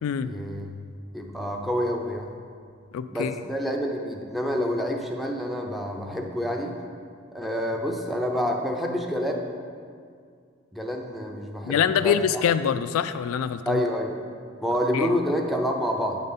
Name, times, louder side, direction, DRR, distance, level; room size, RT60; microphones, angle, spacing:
voice 1, 0.2-0.7 1.1-2.3 3.1-6.7 7.3-9.5 10.7-12.1 13.7-14.2 14.6-16.2, equal, ahead, 1 dB, 0.6 m, -28 dB
voice 2, 2.9-3.4 11.7-13.8 14.9-15.1, left 8 dB, 80° left, 14 dB, 0.3 m, -24 dB
9.3 x 3.9 x 5.5 m, 2.1 s
head